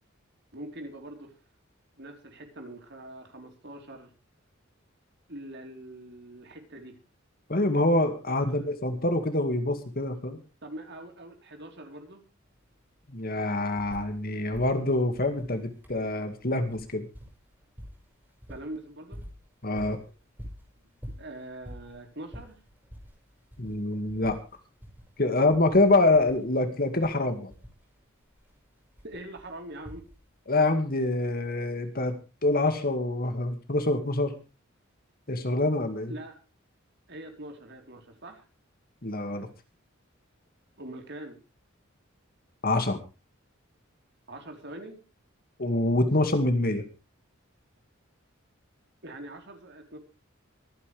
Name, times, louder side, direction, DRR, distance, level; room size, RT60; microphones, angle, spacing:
voice 1, 0.5-1.3 2.0-4.1 5.3-7.0 8.3-8.7 10.6-12.2 18.5-19.2 21.2-22.6 29.0-30.1 36.1-36.4 37.1-38.5 40.8-41.4 44.3-45.0 49.0-50.0, right 1 dB, 55° right, 4 dB, 4.0 m, -43 dB
voice 2, 7.5-10.4 13.1-17.1 19.6-20.0 23.6-24.4 25.2-27.5 30.5-34.3 35.3-36.1 39.0-39.5 42.6-43.0 45.6-46.8, left 2 dB, 45° left, 8 dB, 2.1 m, -25 dB
sound 1, 12.5-12.6 12.8-14.2 14.5-30.5 31.5-31.6, equal, 10° right, 6.3 m, -48 dB
24.5 x 9.8 x 3.4 m, 0.31 s
head